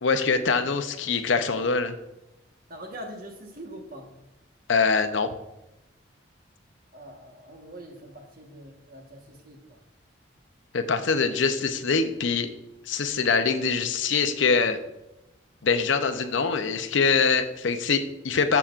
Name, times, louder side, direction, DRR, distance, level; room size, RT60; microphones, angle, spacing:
voice 1, 0.0-1.9 4.7-5.4 10.7-12.5 12.9-14.8 15.6-18.6, left 5 dB, 75° left, 9 dB, 0.7 m, -24 dB
voice 2, 2.7-4.1 6.9-9.8, right 1 dB, 45° right, 2 dB, 1.3 m, -43 dB
14.0 x 5.8 x 2.5 m, 0.95 s
head